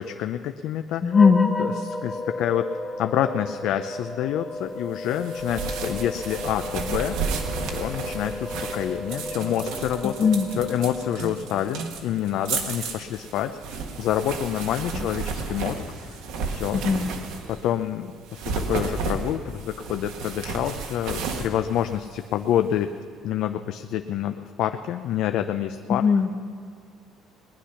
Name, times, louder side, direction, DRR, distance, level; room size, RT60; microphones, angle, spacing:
voice 1, 0.0-1.1 1.6-2.7 3.0-7.2 7.6-10.3 10.6-16.2 16.5-16.8 17.5-22.9 23.2-26.0, left 11 dB, 70° left, 8 dB, 0.5 m, -28 dB
voice 2, 1.0-1.5 6.8-6.9 10.0-10.5 14.9-15.1 16.7-17.1 25.9-26.3, left 5 dB, 35° left, 3 dB, 0.7 m, -20 dB
sound 1, 1.1-11.6, left 1 dB, 10° left, 1.0 m, -34 dB
sound 2, 5.1-17.7 18.2-22.5, right 4 dB, 85° right, 1.6 m, -33 dB
20.0 x 10.0 x 5.8 m, 2.1 s
cardioid pair, 140°, 0 cm